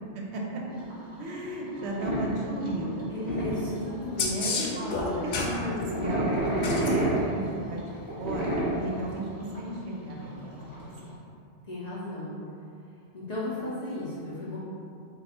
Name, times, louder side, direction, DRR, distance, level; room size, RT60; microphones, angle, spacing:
voice 1, 0.1-0.6 1.2-3.1 4.3-5.7 6.0-7.4 7.7-7.8 8.2-10.5 10.8-10.9, right 1 dB, 70° right, -2 dB, 0.8 m, -34 dB
sound 1, 0.7-11.1, right 1 dB, 30° right, 0.8 m, -31 dB
voice 2, 3.1-6.3 11.7-12.3 13.1-14.6, left 1 dB, 45° left, -9 dB, 0.6 m, -34 dB
sound 2, 4.2-5.6 6.6-6.9 9.1-9.2, left 4 dB, 80° left, 0.9 m, -30 dB
3.3 x 2.4 x 4.2 m, 2.6 s
omnidirectional pair, 1.2 m